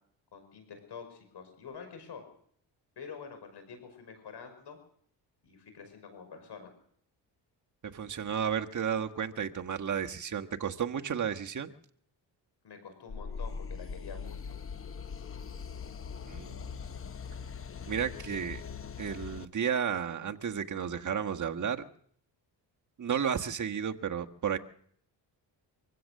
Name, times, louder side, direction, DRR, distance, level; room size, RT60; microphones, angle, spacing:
voice 1, 0.3-2.2 3.0-4.8 5.4-6.7 12.6-14.4, left 6 dB, 60° left, 7 dB, 5.5 m, -47 dB
voice 2, 7.8-11.7 16.2-16.7 17.9-18.6 19.0-21.8 23.0-24.6, right 7 dB, 40° right, 5 dB, 1.5 m, -32 dB
sound 1, 13.1-19.5, left 6 dB, 30° left, 0.9 m, -41 dB
24.5 x 16.0 x 6.6 m, 0.64 s
cardioid pair, 95°, 45 cm